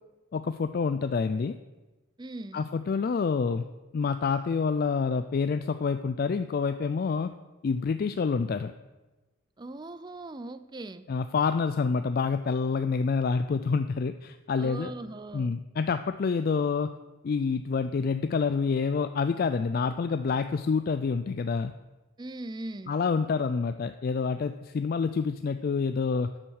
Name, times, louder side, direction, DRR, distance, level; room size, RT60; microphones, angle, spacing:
voice 1, 0.3-1.6 2.5-3.6 3.9-7.3 7.6-8.7 11.1-14.9 15.3-16.9 17.2-21.7 22.9-26.3, left 5 dB, 45° left, 10 dB, 0.3 m, -27 dB
voice 2, 2.2-2.6 9.6-11.0 14.5-15.5 22.2-22.9, right 2 dB, 20° right, 13 dB, 0.4 m, -39 dB
12.5 x 6.2 x 6.4 m, 1.1 s
head